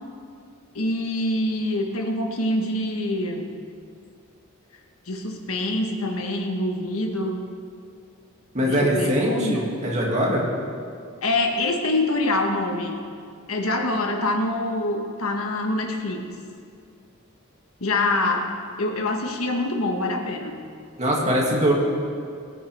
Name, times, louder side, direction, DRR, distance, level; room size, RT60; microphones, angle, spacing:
voice 1, 0.7-3.5 5.1-7.4 8.6-9.6 11.2-13.0 13.5-16.2 17.8-18.5 18.8-20.6, left 2 dB, 80° left, 2 dB, 1.4 m, -25 dB
voice 2, 8.5-10.5 21.0-21.7, equal, 35° right, -3 dB, 2.4 m, -22 dB
21.0 x 9.2 x 3.6 m, 2.3 s
head